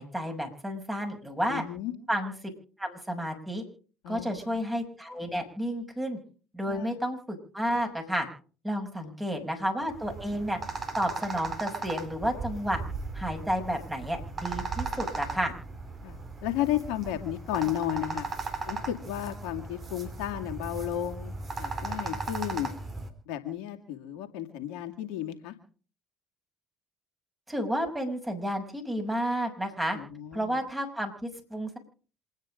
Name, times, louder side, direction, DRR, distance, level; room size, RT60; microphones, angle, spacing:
voice 1, 0.0-1.6 2.1-2.3 2.8-3.6 4.1-6.2 6.5-8.3 8.6-10.6 11.0-12.8 13.1-15.5 27.5-30.0 30.3-31.8, equal, 10° right, 4 dB, 6.2 m, -31 dB
voice 2, 1.5-1.9 4.0-4.6 6.7-6.9 9.0-9.1 16.0-18.3 18.7-22.7 23.3-25.5 29.9-30.6, left 12 dB, 75° left, 6 dB, 2.2 m, -33 dB
sound 1, 9.9-23.1, right 3 dB, 35° right, 4.0 m, -37 dB
27.0 x 9.6 x 5.1 m, 0.41 s
hypercardioid pair, 60°, 0 cm